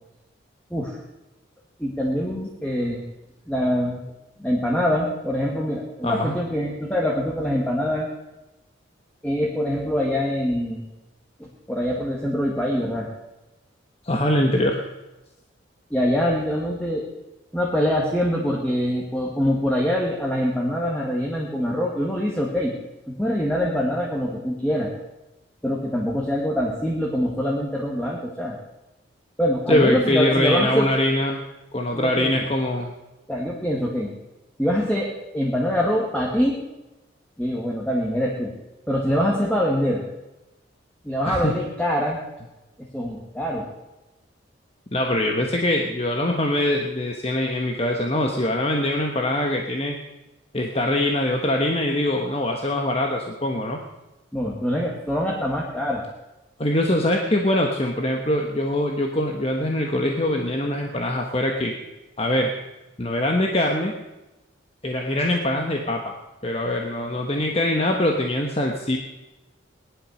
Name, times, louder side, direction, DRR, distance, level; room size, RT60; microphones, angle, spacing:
voice 1, 1.8-3.0 3.5-4.0 4.4-8.1 9.2-10.9 11.4-13.1 15.9-17.1 17.5-22.7 23.1-24.9 25.6-28.6 29.4-30.9 31.9-32.3 33.3-34.1 34.6-36.6 37.4-38.5 38.9-40.0 41.0-42.2 42.9-43.7 54.3-56.0, equal, 5° left, -2 dB, 1.9 m, -24 dB
voice 2, 6.0-6.4 14.0-14.8 29.7-31.4 31.7-32.9 41.2-41.6 44.9-50.0 50.5-53.8 56.6-61.7 62.2-62.5 63.0-63.9 64.8-66.1 66.4-69.0, left 1 dB, 30° left, 2 dB, 1.3 m, -23 dB
19.0 x 11.5 x 6.5 m, 1.0 s
head